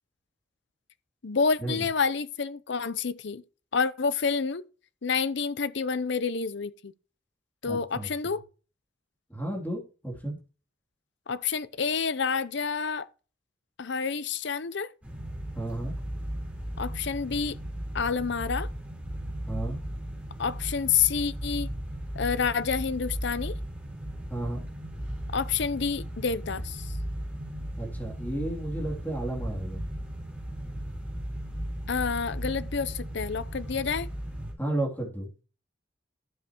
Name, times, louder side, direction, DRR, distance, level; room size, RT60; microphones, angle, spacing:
voice 1, 1.2-3.4 3.7-4.6 5.0-6.9 7.6-8.4 11.3-13.1 13.8-14.9 16.8-17.6 17.9-18.7 20.4-21.7 22.2-23.5 25.3-26.8 31.9-34.1, left 5 dB, 65° left, 0.7 m, -28 dB
voice 2, 7.6-8.3 9.3-10.4 15.5-15.9 19.5-19.8 24.3-24.6 27.8-29.8 34.6-35.3, right 1 dB, 10° left, 3.0 m, -33 dB
sound 1, 15.0-34.5, equal, 10° right, 4.1 m, -36 dB
12.0 x 7.6 x 3.0 m
head